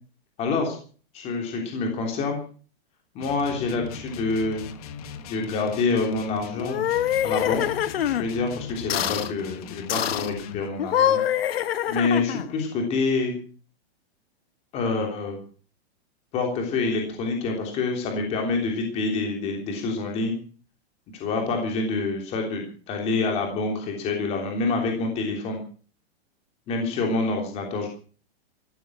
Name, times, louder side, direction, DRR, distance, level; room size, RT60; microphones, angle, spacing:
voice 1, 0.4-0.8 1.1-2.4 3.1-4.7 5.3-6.9 7.2-7.6 8.0-11.2 11.9-13.3 14.7-15.4 16.3-20.3 21.1-25.6 26.7-27.9, left 3 dB, 20° left, 2 dB, 3.3 m, -27 dB
sound 1, 3.2-10.6, left 6 dB, 35° left, 1.6 m, -39 dB
sound 2, 6.6-8.3 8.9-9.3 9.9-10.3 10.8-12.5, left 10 dB, 65° left, 1.5 m, -25 dB
15.0 x 14.0 x 6.1 m, 0.41 s
supercardioid pair, 180°, 32 cm